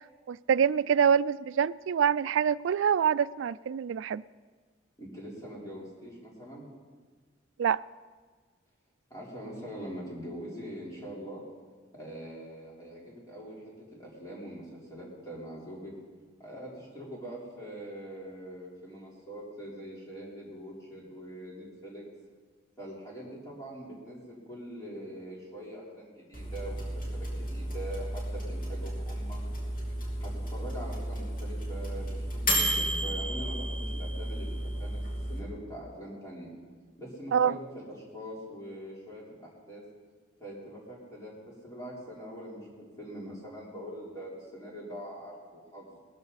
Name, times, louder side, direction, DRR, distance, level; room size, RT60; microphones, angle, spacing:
voice 1, 0.3-4.2 7.6-7.8 37.3-37.6, right 7 dB, 75° right, 0.3 m, -25 dB
voice 2, 5.0-6.7 9.1-11.4 11.9-15.9 16.4-22.0 22.8-26.8 27.1-29.4 30.2-32.4 32.7-35.0 35.3-36.5 37.0-39.8 40.4-46.0, equal, 15° left, 3.9 m, -43 dB
sound 1, 26.3-35.4, right 1 dB, 45° left, 3.4 m, -33 dB
19.0 x 13.5 x 4.1 m
head